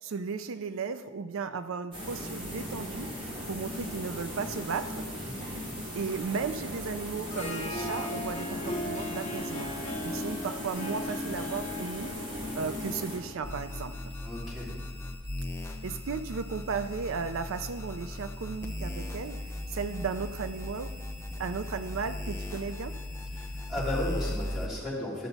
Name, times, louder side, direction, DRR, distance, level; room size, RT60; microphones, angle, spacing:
voice 1, 0.0-5.1 5.4-5.6 5.9-12.1 12.5-13.9 15.8-20.9 21.4-23.0, right 5 dB, 80° right, 10 dB, 0.4 m, -35 dB
sound 1, 1.9-13.6, equal, 25° right, 2.0 m, -38 dB
voice 2, 5.1-5.4 14.2-14.8 23.3-25.3, left 1 dB, 5° right, -8 dB, 3.2 m, -35 dB
Harp, 7.1-14.2, left 2 dB, 35° left, 1.0 m, -38 dB
sound 2, 13.4-24.7, left 1 dB, 15° left, 0.7 m, -37 dB
13.0 x 6.9 x 4.1 m, 1.5 s
head